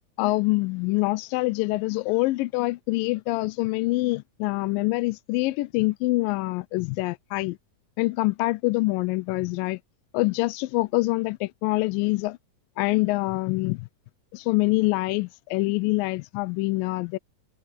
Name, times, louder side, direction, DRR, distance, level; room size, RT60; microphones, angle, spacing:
voice 1, 0.2-7.6 8.0-9.8 10.1-12.4 12.8-13.9 14.3-17.2, left 22 dB, 85° left, 2.3 m, -25 dB
omnidirectional pair, 3.9 m